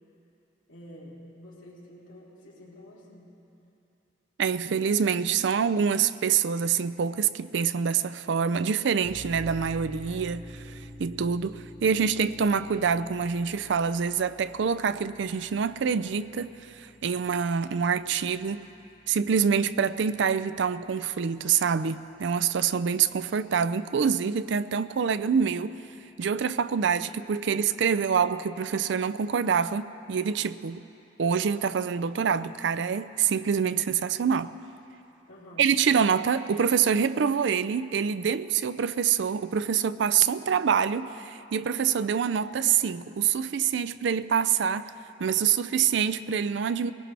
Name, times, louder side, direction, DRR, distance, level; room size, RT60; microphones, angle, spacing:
voice 1, 0.7-3.3 35.3-35.7, equal, 75° left, 3.6 m, -48 dB
voice 2, 4.4-18.6 19.1-25.7 26.2-30.8 31.2-34.5 35.6-44.9 45.2-46.9, right 7 dB, 65° right, 0.4 m, -26 dB
sound 1, 9.0-20.3, left 1 dB, 10° left, 3.7 m, -48 dB
21.5 x 19.0 x 3.4 m
head